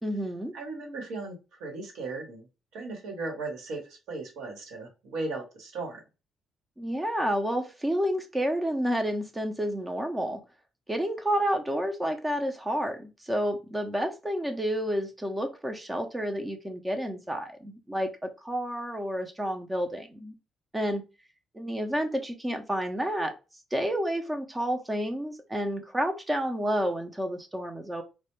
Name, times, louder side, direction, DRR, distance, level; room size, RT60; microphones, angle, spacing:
voice 1, 0.0-0.5 6.8-10.4 10.9-20.3 20.7-21.0 21.5-23.3 23.7-28.0, equal, 15° right, 5 dB, 0.5 m, -30 dB
voice 2, 0.5-2.5 2.7-3.8 4.1-6.0, right 3 dB, 85° right, 1 dB, 1.0 m, -36 dB
2.1 x 2.1 x 2.9 m, 0.29 s
cardioid pair, 90°, 0 cm